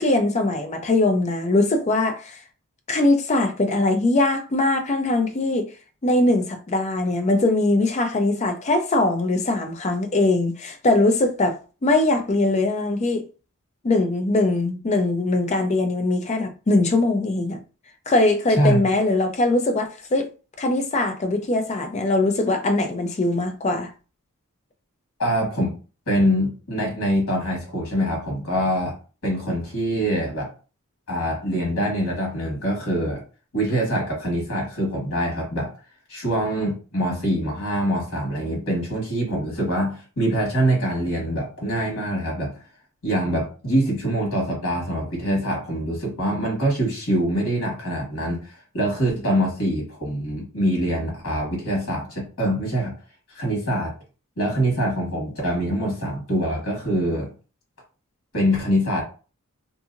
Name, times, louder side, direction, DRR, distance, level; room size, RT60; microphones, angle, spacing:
voice 1, 0.0-2.4 2.9-5.7 6.0-13.2 13.8-17.6 18.1-20.3 20.6-23.9, left 2 dB, 30° left, 0.5 m, -21 dB
voice 2, 18.5-18.8 25.2-25.7 26.1-29.0 29.2-30.5 31.1-33.2 33.5-35.7 36.1-42.5 43.0-52.9 53.3-53.9 54.4-57.3 58.3-59.0, equal, 65° left, 1.4 m, -24 dB
2.8 x 2.6 x 2.5 m
head